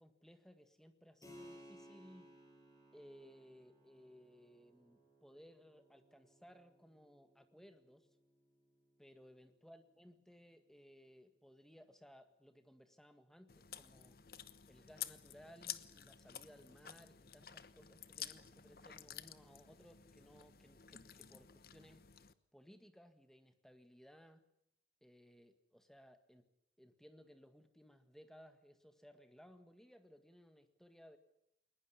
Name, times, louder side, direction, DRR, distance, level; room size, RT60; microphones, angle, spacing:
voice 1, 0.0-2.3 2.9-8.1 9.0-14.2 14.7-22.0 22.5-24.5 25.0-26.5 26.8-31.2, equal, 5° left, 8 dB, 1.8 m, -61 dB
Keyboard (musical), 1.2-11.4, equal, 20° left, 7.4 m, -63 dB
Chewing mastication, 13.5-22.3, left 11 dB, 55° left, 1.0 m, -51 dB
21.0 x 20.0 x 8.5 m, 0.79 s
head